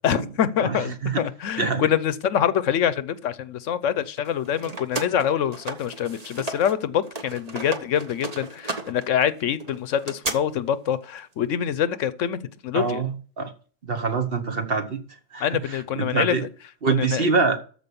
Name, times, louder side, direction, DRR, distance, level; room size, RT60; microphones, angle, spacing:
voice 1, 0.0-13.0 15.4-16.4 16.9-17.3, left 9 dB, 75° left, 1.0 m, -25 dB
sound 1, 4.2-6.8 7.0-10.3, right 3 dB, 30° right, 1.2 m, -34 dB
voice 2, 12.7-13.5 13.8-15.0 15.3-15.5 16.0-16.4 16.8-17.6, right 4 dB, 45° right, 1.4 m, -24 dB
13.5 x 5.0 x 6.9 m
omnidirectional pair, 1.3 m